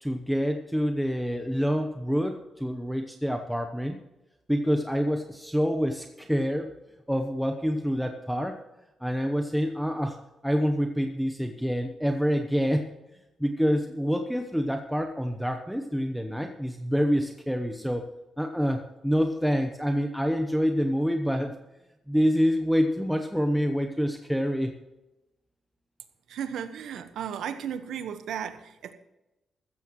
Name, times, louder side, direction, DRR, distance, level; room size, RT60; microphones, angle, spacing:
voice 1, 0.0-4.0 4.5-6.7 7.1-8.6 9.0-10.2 10.4-12.9 13.4-18.1 18.4-21.5 22.1-24.8, equal, ahead, 4 dB, 0.9 m, -27 dB
voice 2, 26.3-28.9, right 8 dB, 80° right, 10 dB, 1.2 m, -35 dB
15.5 x 13.5 x 3.1 m, 0.99 s
cardioid pair, 140°, 0 cm